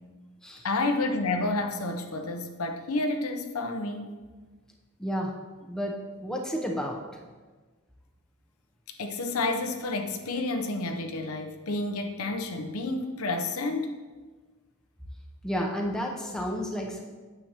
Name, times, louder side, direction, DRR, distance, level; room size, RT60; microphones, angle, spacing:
voice 1, 0.6-4.1 8.9-14.0, left 2 dB, 85° left, 5 dB, 0.8 m, -30 dB
voice 2, 5.0-5.3 5.7-7.0 15.4-17.0, equal, 5° left, 0 dB, 0.7 m, -31 dB
9.1 x 6.9 x 2.9 m, 1.3 s
head